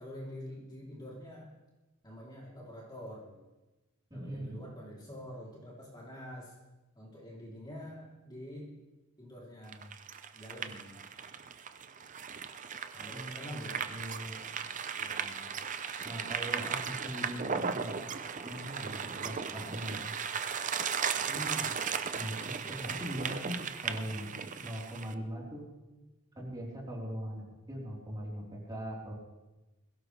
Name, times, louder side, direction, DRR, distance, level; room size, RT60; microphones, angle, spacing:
voice 1, 0.0-1.5 2.0-3.4 4.1-6.6 6.9-8.7 9.2-9.9 10.3-10.9 12.9-13.9 14.9-15.5 21.1-21.8 22.6-23.2, equal, 20° left, -4 dB, 3.4 m, -46 dB
voice 2, 4.1-4.6 13.1-14.4 16.0-18.0 18.4-20.1 22.1-23.6 23.8-25.6 26.4-29.1, equal, 20° right, -4 dB, 4.0 m, -41 dB
sound 1, 9.7-25.1, right 6 dB, 35° right, 0.6 m, -36 dB
21.5 x 16.5 x 3.4 m, 1.1 s
head